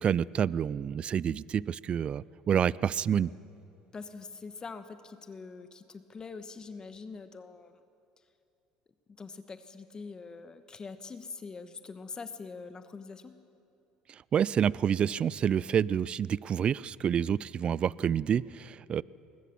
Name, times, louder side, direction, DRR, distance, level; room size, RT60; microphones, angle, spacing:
voice 1, 0.0-3.3 14.3-19.0, right 8 dB, 40° right, 22 dB, 0.4 m, -28 dB
voice 2, 3.9-7.7 9.1-13.4, left 4 dB, 30° left, 10 dB, 1.3 m, -44 dB
20.5 x 20.5 x 7.1 m, 2.6 s
supercardioid pair, 85°, 3 cm